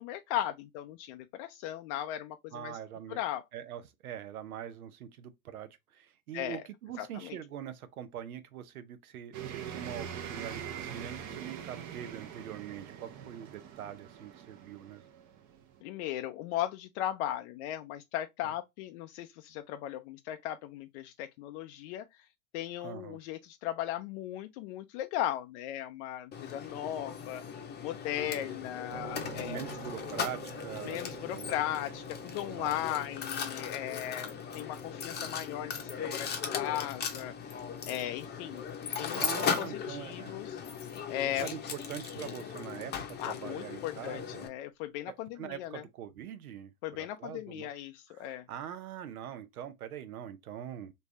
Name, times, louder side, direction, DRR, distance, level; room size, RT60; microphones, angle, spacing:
voice 1, 0.0-2.8 3.1-3.4 6.3-6.6 7.0-7.4 15.8-22.0 22.5-29.6 30.8-37.6 37.9-38.6 39.0-40.6 41.1-41.5 43.2-45.8 46.8-48.4, left 12 dB, 55° left, 0.4 m, -37 dB
voice 2, 2.5-3.2 3.5-15.0 18.4-18.5 22.8-23.2 28.2-28.7 29.4-31.0 31.3-31.6 32.5-32.9 35.2-35.3 39.2-40.4 41.2-44.5 45.1-47.7 48.1-50.9, right 10 dB, 80° right, 0.7 m, -43 dB
sound 1, 9.3-15.8, right 8 dB, 45° right, 0.8 m, -43 dB
Mechanisms, 26.3-44.5, left 7 dB, 25° left, 0.7 m, -38 dB
sound 2, 28.9-42.6, right 4 dB, 60° right, 1.1 m, -51 dB
3.3 x 2.7 x 3.1 m
hypercardioid pair, 90°, 43 cm